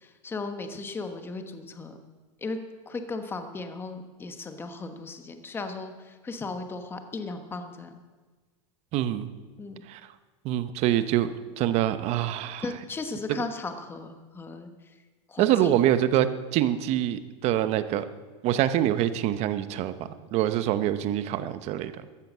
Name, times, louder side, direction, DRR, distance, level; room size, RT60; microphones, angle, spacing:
voice 1, 0.0-2.0 2.4-2.6 2.9-8.0 9.6-9.8 12.6-14.7 15.3-15.8, left 3 dB, 15° left, 7 dB, 1.2 m, -36 dB
voice 2, 8.9-9.3 9.9-10.0 10.4-12.6 15.4-18.1 18.4-19.9 20.3-21.9, right 12 dB, 40° right, 12 dB, 0.9 m, -25 dB
14.5 x 10.5 x 7.3 m, 1.3 s
supercardioid pair, 145°, 16 cm